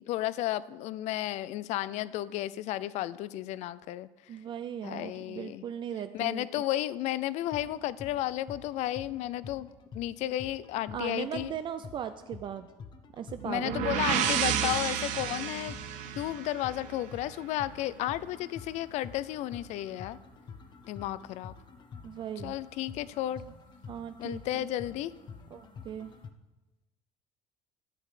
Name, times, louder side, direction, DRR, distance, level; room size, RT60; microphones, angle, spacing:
voice 1, 0.0-4.1 4.8-5.6 6.1-9.7 9.9-11.5 13.4-15.8 16.2-20.2 20.9-21.5 22.4-23.4 24.2-25.1, left 14 dB, 60° left, 18 dB, 0.4 m, -33 dB
voice 2, 4.3-6.4 10.9-12.7 13.1-14.8 22.0-22.6 23.9-24.7 25.5-26.1, right 9 dB, 40° right, 10 dB, 0.4 m, -38 dB
sound 1, 7.4-26.3, left 5 dB, 35° left, 0.8 m, -48 dB
sound 2, 13.4-17.2, right 9 dB, 65° right, 1.0 m, -31 dB
12.0 x 7.7 x 4.9 m, 1.1 s
cardioid pair, 140°, 13 cm